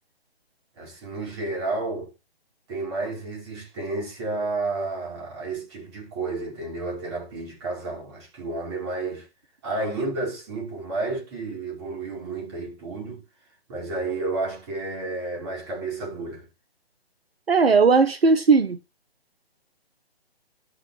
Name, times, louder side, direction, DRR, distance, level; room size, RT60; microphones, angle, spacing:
voice 1, 0.8-2.1 2.7-9.3 9.6-13.2 13.7-16.5, right 3 dB, 25° right, 5.3 m, -31 dB
voice 2, 17.5-18.8, right 4 dB, 70° right, 1.1 m, -17 dB
11.5 x 6.6 x 3.3 m
figure-of-eight pair, 140°, 31 cm